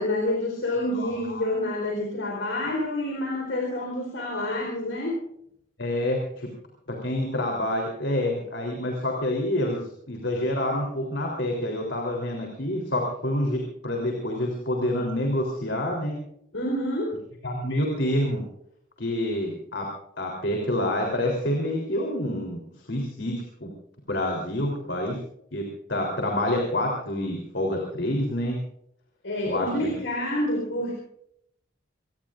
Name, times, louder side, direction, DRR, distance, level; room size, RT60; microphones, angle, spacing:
voice 1, 0.0-5.2 16.5-17.2 29.2-30.9, left 1 dB, 85° left, 0 dB, 4.3 m, -28 dB
voice 2, 5.8-6.5 6.9-16.2 17.4-18.4 19.0-19.9 20.2-22.6 22.9-23.7 24.1-25.2 25.5-25.6 25.9-28.6 29.4-29.9, left 1 dB, 70° left, 0 dB, 3.6 m, -27 dB
25.5 x 19.0 x 2.6 m, 0.72 s
head